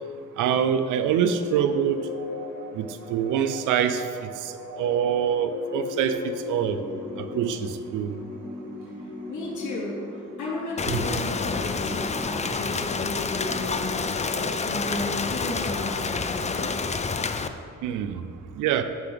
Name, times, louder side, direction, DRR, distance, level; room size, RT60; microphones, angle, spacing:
voice 1, 0.4-2.1 2.7-4.5 4.8-6.8 7.2-8.1 10.9-11.0 17.8-18.2 18.6-18.8, right 8 dB, 85° right, 9 dB, 0.6 m, -25 dB
sound 1, 1.0-14.7, left 3 dB, 50° left, 2.0 m, -38 dB
voice 2, 9.3-10.0 10.4-16.9, left 2 dB, 80° left, -5 dB, 2.4 m, -33 dB
Rain, 10.8-17.5, left 4 dB, 25° left, 0.5 m, -28 dB
13.5 x 5.9 x 3.4 m, 2.3 s
cardioid pair, 90°, 30 cm